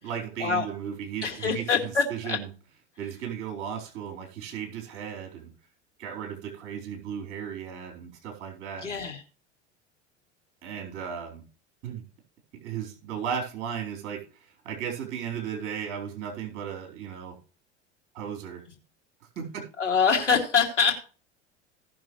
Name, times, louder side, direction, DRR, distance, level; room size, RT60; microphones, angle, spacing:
voice 1, 0.0-2.5 3.0-5.5 6.0-8.9 10.6-11.4 11.8-12.0 12.5-17.4 18.1-18.6 19.4-19.6, right 8 dB, 55° right, 2 dB, 4.2 m, -35 dB
voice 2, 1.2-2.4 8.8-9.2 19.8-21.1, left 6 dB, 90° left, 2 dB, 2.4 m, -25 dB
17.5 x 6.2 x 3.2 m, 0.37 s
figure-of-eight pair, 80°, 35 cm